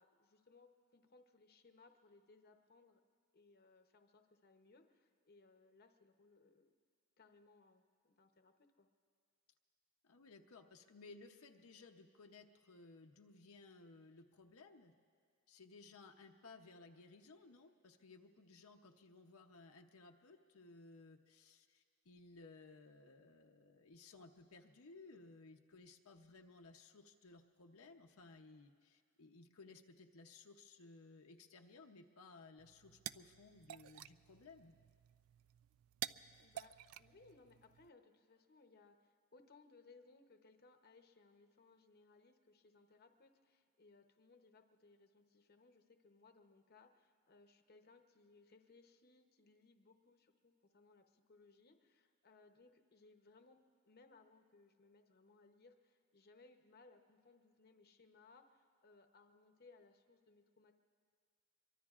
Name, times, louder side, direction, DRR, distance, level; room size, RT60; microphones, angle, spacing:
voice 1, 0.0-3.0 3.3-6.7 7.2-8.9 36.4-60.7, left 3 dB, 45° left, 6 dB, 0.8 m, -66 dB
voice 2, 10.0-14.9 15.5-34.7, left 3 dB, 80° left, 4 dB, 0.7 m, -59 dB
sound 1, 32.6-37.9, right 12 dB, 75° right, 0.3 m, -51 dB
25.5 x 23.5 x 2.4 m, 2.1 s
head